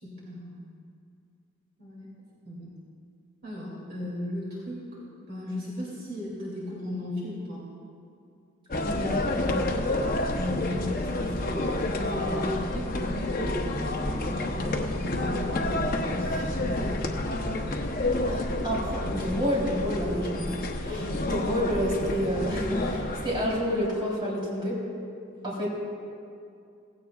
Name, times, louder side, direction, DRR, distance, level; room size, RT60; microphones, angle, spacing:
voice 1, 0.0-0.7 1.8-2.1 2.4-2.7 3.4-7.6 10.3-13.6 14.0-17.0, left 1 dB, 50° right, -6 dB, 2.7 m, -36 dB
sound 1, 8.7-23.9, left 1 dB, 45° left, 0.8 m, -29 dB
voice 2, 8.8-9.7 18.3-24.8 25.4-25.7, equal, 25° right, -6 dB, 3.5 m, -29 dB
17.0 x 16.0 x 2.4 m, 2.4 s
head